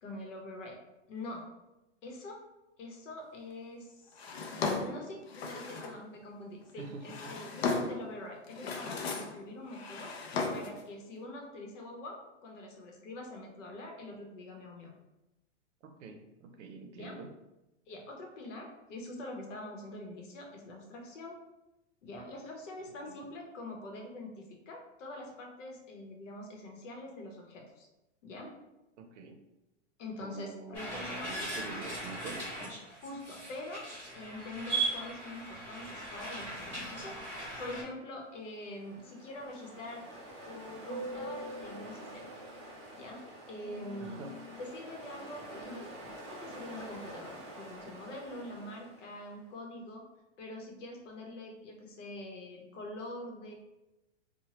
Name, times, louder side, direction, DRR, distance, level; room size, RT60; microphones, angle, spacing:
voice 1, 0.0-0.8 1.1-1.4 2.0-2.4 2.8-4.4 4.8-14.9 16.9-17.2 17.9-21.4 22.0-27.9 28.2-28.5 30.0-31.3 33.0-33.8 34.1-37.2 37.6-40.1 40.4-42.3 42.9-43.2 43.5-44.3 44.6-50.0 50.4-53.5, left 1 dB, 75° left, 1 dB, 0.9 m, -44 dB
Drawer open or close, 4.2-6.0 6.8-8.1 8.5-9.4 9.7-10.8, left 4 dB, 60° left, 0.5 m, -36 dB
voice 2, 6.8-7.3 15.8-17.3 22.9-23.2 29.0-29.4 30.2-32.5 44.0-44.3, right 4 dB, 75° right, 5 dB, 0.6 m, -46 dB
sound 1, 30.7-37.8, right 2 dB, 15° left, 0.7 m, -38 dB
Ocean, 38.3-49.4, right 1 dB, 25° right, 0.4 m, -46 dB
2.9 x 2.2 x 2.9 m, 0.97 s
supercardioid pair, 180°, 37 cm